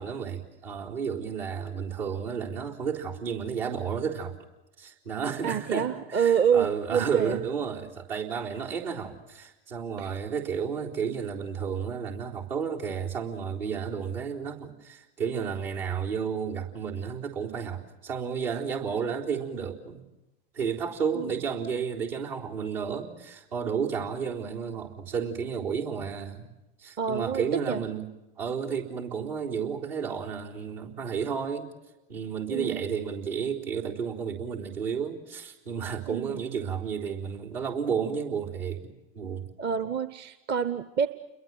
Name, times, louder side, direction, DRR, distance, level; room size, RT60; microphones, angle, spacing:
voice 1, 0.0-4.3 4.8-20.1 20.5-26.5 26.8-28.1 28.4-31.7 32.1-39.5, right 6 dB, 75° right, -3 dB, 4.2 m, -32 dB
voice 2, 5.4-7.4 10.0-10.1 21.1-21.3 27.0-27.8 32.5-32.8 36.1-36.4 39.6-41.1, right 7 dB, 35° right, 13 dB, 0.9 m, -27 dB
29.0 x 22.5 x 7.7 m, 0.97 s
figure-of-eight pair, 80°, 29 cm